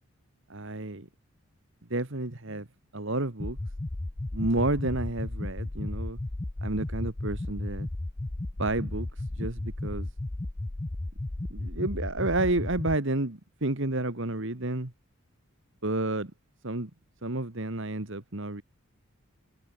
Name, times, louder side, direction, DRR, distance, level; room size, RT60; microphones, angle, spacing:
voice 1, 0.5-1.1 1.9-2.7 2.9-3.6 4.3-6.2 6.6-7.9 8.6-9.1 9.4-10.1 11.5-14.9 15.8-16.3 16.6-16.9 17.2-18.6, right 2 dB, 55° right, 1.9 m, -30 dB
sound 1, 3.4-12.9, left 1 dB, 20° left, 0.5 m, -34 dB
head